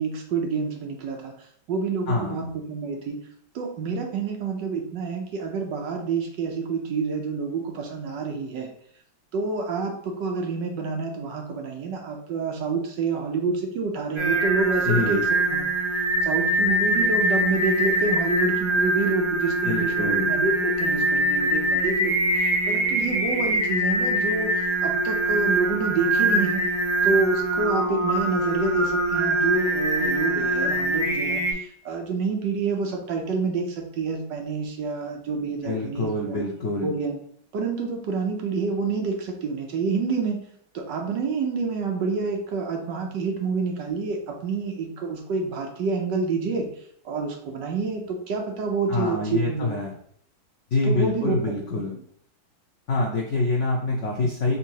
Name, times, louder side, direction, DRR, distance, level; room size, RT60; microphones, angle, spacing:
voice 1, 0.0-1.3 1.7-3.2 3.5-8.7 9.3-15.7 16.2-26.6 27.0-36.4 36.8-37.2 37.5-40.5 40.7-46.7 47.0-49.8 50.9-51.5 51.9-52.0, right 4 dB, 70° right, 2 dB, 1.3 m, -28 dB
voice 2, 2.1-2.4 14.8-15.2 19.6-20.3 35.6-36.9 48.9-49.9 50.7-51.9 52.9-54.6, left 2 dB, 75° left, -1 dB, 0.6 m, -25 dB
Singing, 14.2-31.5, right 1 dB, 45° right, 0.3 m, -23 dB
3.9 x 2.8 x 4.6 m, 0.65 s
omnidirectional pair, 2.2 m